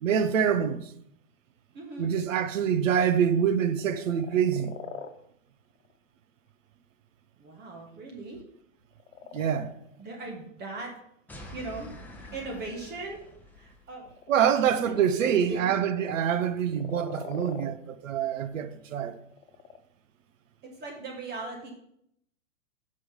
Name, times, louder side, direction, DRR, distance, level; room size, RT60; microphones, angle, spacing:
voice 1, 0.0-0.8 2.0-4.7 9.3-9.7 14.3-19.2, right 8 dB, 75° right, 0.9 m, -25 dB
voice 2, 1.7-2.1 7.4-8.4 10.0-10.9 11.5-11.9 12.3-13.2 13.5-14.1 14.8-15.7 20.6-21.7, right 3 dB, 25° right, 1.5 m, -38 dB
sound 1, 3.8-5.2 5.7-6.0 8.9-10.2 12.2-12.3 12.9-13.3 13.9-14.5 15.6-16.3 16.7-17.7 19.3-19.8, left 6 dB, 80° left, 1.0 m, -43 dB
sound 2, 11.3-13.9, left 1 dB, 5° left, 1.0 m, -46 dB
7.8 x 5.5 x 5.2 m
hypercardioid pair, 135°, 39 cm